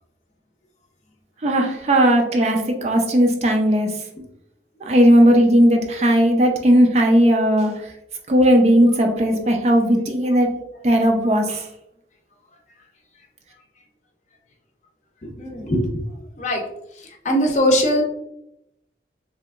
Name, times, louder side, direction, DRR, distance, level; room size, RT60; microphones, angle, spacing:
voice 1, 1.4-3.9 4.8-7.7 8.3-10.5 10.8-11.7, equal, 35° right, 2 dB, 0.4 m, -16 dB
voice 2, 15.2-16.0 16.4-16.6 17.2-18.0, equal, 40° left, 2 dB, 0.5 m, -20 dB
3.3 x 2.8 x 2.3 m, 0.82 s
head